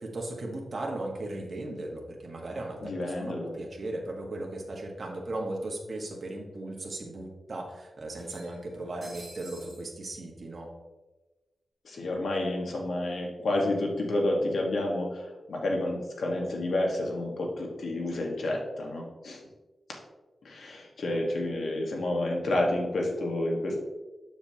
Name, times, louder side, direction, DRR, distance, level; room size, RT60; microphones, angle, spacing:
voice 1, 0.0-10.7, right 2 dB, 45° right, 0 dB, 1.5 m, -37 dB
voice 2, 2.8-3.5 11.8-19.4 20.4-23.8, left 1 dB, 80° left, 0 dB, 1.5 m, -30 dB
sound 1, 6.7-6.8 8.1-9.9, right 2 dB, 30° right, 2.2 m, -50 dB
6.9 x 6.8 x 2.9 m, 1.1 s
wide cardioid pair, 115°, 0 cm